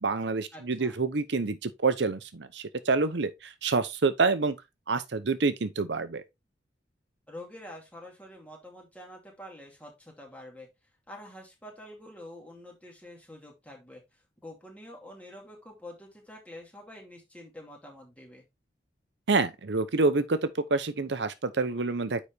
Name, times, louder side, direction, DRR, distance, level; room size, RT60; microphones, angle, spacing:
voice 1, 0.0-4.6 4.9-6.2 19.3-22.2, right 3 dB, 70° right, 0.7 m, -27 dB
voice 2, 0.5-1.0 7.3-10.7 11.1-18.4, left 1 dB, 10° left, 2.5 m, -47 dB
9.6 x 4.2 x 3.4 m
head